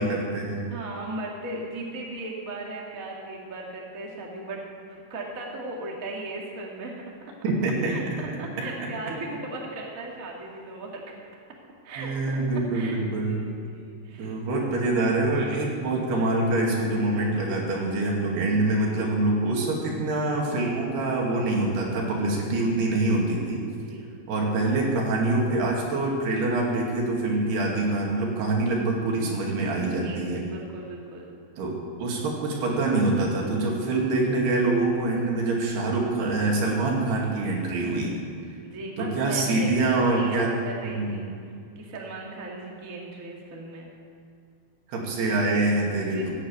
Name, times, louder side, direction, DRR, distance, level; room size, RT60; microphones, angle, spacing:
voice 1, 0.0-0.6 7.4-8.0 12.0-13.5 14.2-23.6 24.3-30.4 31.6-38.2 39.0-40.5 40.8-41.3 44.9-46.3, right 2 dB, 65° right, -2 dB, 4.3 m, -25 dB
voice 2, 0.7-7.3 7.9-11.1 11.8-14.3 23.8-24.1 29.7-31.3 37.8-38.1 38.6-41.3 41.7-43.9 45.9-46.3, right 2 dB, 40° right, -2 dB, 1.2 m, -37 dB
15.5 x 9.4 x 8.6 m, 2.4 s
omnidirectional pair, 5.3 m